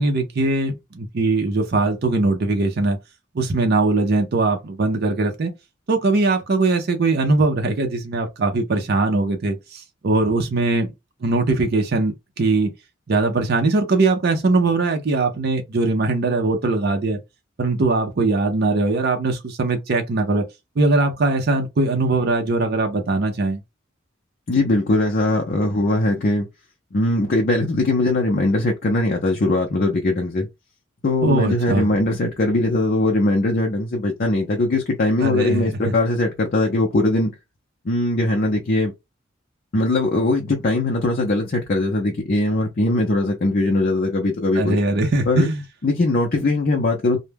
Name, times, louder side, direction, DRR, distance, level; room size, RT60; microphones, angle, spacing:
voice 1, 0.0-3.0 3.3-5.5 5.9-10.9 11.2-12.7 13.1-17.2 17.6-20.4 20.8-23.6 31.2-31.9 35.2-35.9 44.5-45.6, right 2 dB, 55° right, 0.5 m, -21 dB
voice 2, 24.5-26.5 26.9-30.5 31.0-37.3 37.9-38.9 39.7-44.8 45.3-45.5 45.8-47.2, left 2 dB, 45° left, 0.5 m, -20 dB
2.2 x 2.1 x 3.3 m
head